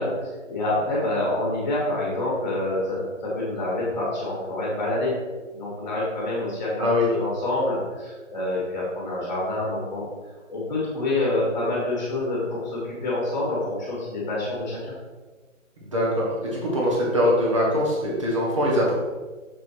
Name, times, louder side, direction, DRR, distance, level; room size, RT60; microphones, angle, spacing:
voice 1, 0.0-5.1 5.5-10.1 10.5-14.9, left 2 dB, 15° left, -5 dB, 2.1 m, -27 dB
voice 2, 15.8-18.9, left 1 dB, 25° right, -4 dB, 1.6 m, -22 dB
6.9 x 5.3 x 4.4 m, 1.3 s
figure-of-eight pair, 170°, 40 cm